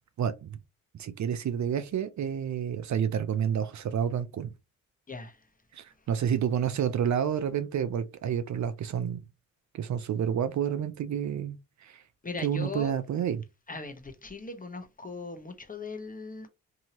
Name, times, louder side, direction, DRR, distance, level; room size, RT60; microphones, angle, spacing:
voice 1, 0.2-0.6 1.0-4.5 5.7-9.2 9.7-12.0 12.4-13.4, right 8 dB, 55° right, 0.5 m, -29 dB
voice 2, 12.2-12.9 13.7-16.5, left 3 dB, 25° left, 0.9 m, -39 dB
2.8 x 2.7 x 2.8 m
supercardioid pair, 50°, 34 cm